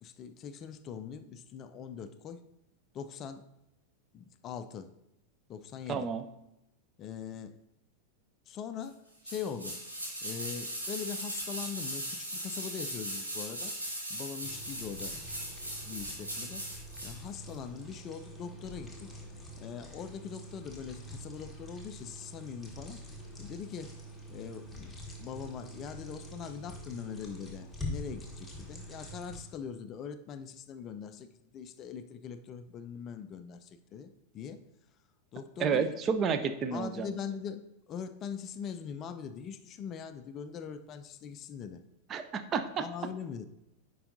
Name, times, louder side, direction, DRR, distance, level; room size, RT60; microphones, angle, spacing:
voice 1, 0.0-2.4 2.9-3.4 4.1-4.9 5.5-6.1 7.0-7.6 8.5-9.8 10.2-13.7 14.1-15.2 15.8-16.7 17.0-19.1 19.6-23.1 23.4-24.0 24.3-31.3 31.5-34.6 35.3-35.9 36.7-41.8 42.8-43.5, left 7 dB, 30° left, 10 dB, 0.4 m, -42 dB
voice 2, 5.9-6.2 35.6-37.1 42.1-42.8, right 6 dB, 30° right, 10 dB, 0.5 m, -30 dB
sound 1, 9.2-17.2 17.5-17.6, right 1 dB, 80° right, 2.2 m, -39 dB
sound 2, 14.4-29.4, equal, ahead, 1.4 m, -45 dB
10.0 x 4.6 x 2.6 m, 0.87 s
figure-of-eight pair, 90°, 0 cm